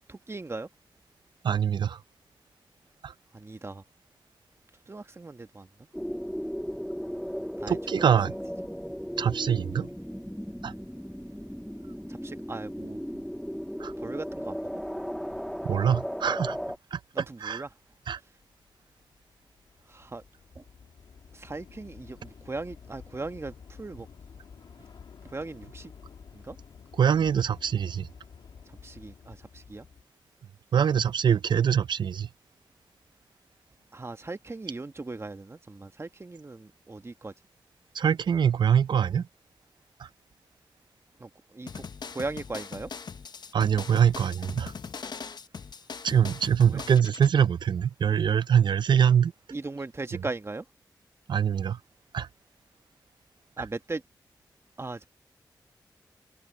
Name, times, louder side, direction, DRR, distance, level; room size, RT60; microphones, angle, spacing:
voice 1, 0.1-0.7 3.3-3.8 4.9-5.7 7.6-8.1 12.1-13.0 14.0-14.7 17.1-17.7 19.9-20.2 21.3-24.1 25.3-25.9 26.3-26.6 28.8-29.8 33.9-37.3 41.2-41.8 42.1-42.9 46.7-46.8 49.5-50.6 53.6-54.0 54.8-55.1, right 3 dB, 35° right, 1.2 m, -38 dB
voice 2, 1.4-2.0 3.0-3.1 7.7-8.3 9.2-9.9 10.6-10.7 13.8-13.9 15.7-16.6 16.9-17.0 17.4-17.6 18.1-18.2 27.0-28.1 30.7-32.3 38.0-39.3 43.5-44.7 46.0-49.3 51.3-51.8 52.1-52.3, right 8 dB, 75° right, 0.6 m, -23 dB
sound 1, 5.9-16.8, equal, ahead, 1.6 m, -36 dB
Train / Subway metro underground, 17.1-17.2 17.5-30.0, left 6 dB, 85° left, 2.2 m, -51 dB
sound 2, 41.7-47.3, left 5 dB, 65° left, 0.9 m, -40 dB
open air
cardioid pair, 45°, 8 cm